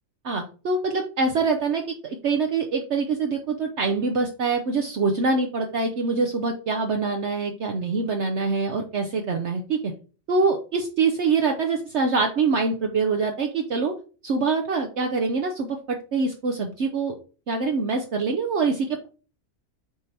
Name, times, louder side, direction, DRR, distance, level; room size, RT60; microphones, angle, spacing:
voice 1, 0.2-9.9 10.3-13.9 14.2-17.2 17.5-19.1, right 4 dB, 60° right, 4 dB, 1.0 m, -24 dB
8.3 x 3.3 x 4.2 m, 0.37 s
omnidirectional pair, 1.4 m